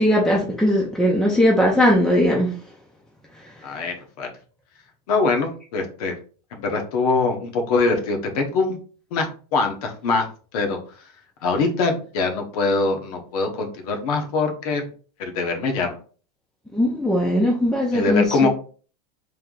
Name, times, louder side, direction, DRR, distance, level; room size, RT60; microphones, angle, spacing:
voice 1, 0.0-2.6 3.4-3.8 16.7-18.5, left 1 dB, ahead, -3 dB, 0.4 m, -19 dB
voice 2, 3.6-4.3 5.1-6.1 6.5-8.8 9.1-10.3 10.5-10.8 11.4-14.8 15.2-15.9 17.9-18.5, left 3 dB, 65° left, 4 dB, 1.0 m, -23 dB
3.3 x 2.7 x 3.7 m, 0.41 s
supercardioid pair, 155°, 20 cm